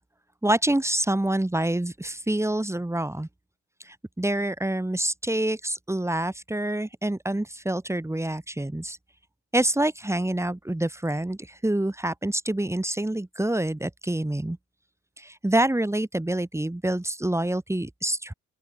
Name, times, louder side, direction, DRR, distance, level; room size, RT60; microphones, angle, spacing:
voice 1, 0.4-3.3 3.8-9.0 9.5-14.6 15.2-18.3, right 1 dB, 10° right, 6.3 m, -27 dB
open air
cardioid pair, 90°, 30 cm